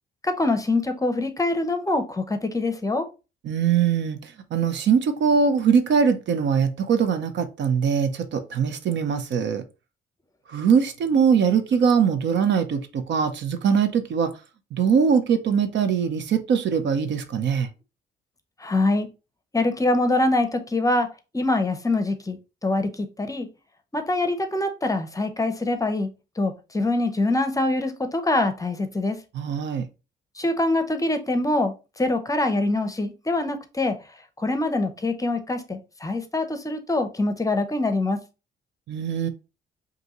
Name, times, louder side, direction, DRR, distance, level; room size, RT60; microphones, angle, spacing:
voice 1, 0.2-3.1 18.6-19.1 19.5-21.1 21.3-23.5 23.9-26.1 26.4-29.2 30.4-34.0 34.4-38.2, left 2 dB, 15° left, 0.7 m, -24 dB
voice 2, 3.4-9.6 10.5-14.4 14.7-17.7 29.3-29.9 38.9-39.3, right 6 dB, 65° right, 0.7 m, -22 dB
5.2 x 2.7 x 3.0 m
cardioid pair, 90°, 20 cm